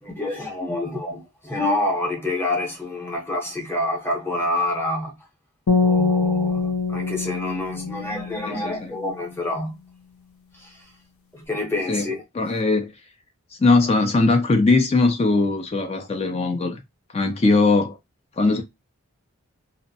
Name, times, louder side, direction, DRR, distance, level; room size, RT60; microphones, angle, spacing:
voice 1, 0.0-5.1 5.8-9.7 10.6-10.7 11.3-12.2, left 1 dB, 10° left, 0.7 m, -27 dB
sound 1, 5.7-8.9, left 4 dB, 80° left, 0.6 m, -23 dB
voice 2, 8.5-8.9 11.9-12.1 12.3-12.9 13.6-16.8 17.1-18.0 18.4-18.6, left 3 dB, 25° left, 0.3 m, -20 dB
2.6 x 2.0 x 2.6 m
head